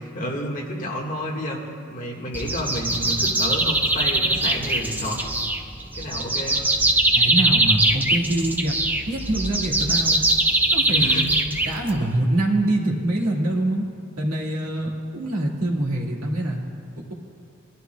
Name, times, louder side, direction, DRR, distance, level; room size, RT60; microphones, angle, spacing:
voice 1, 0.1-1.6 1.9-5.2 5.9-6.6 10.9-11.3, equal, 35° left, -2 dB, 1.7 m, -30 dB
sound 1, 2.3-12.2, right 2 dB, 10° right, 0.4 m, -22 dB
voice 2, 7.1-8.8 9.1-10.2 10.7-11.2 11.7-13.8 14.2-16.6 17.1-17.2, right 1 dB, 85° right, -2 dB, 1.9 m, -24 dB
21.0 x 12.5 x 2.3 m, 2.3 s
head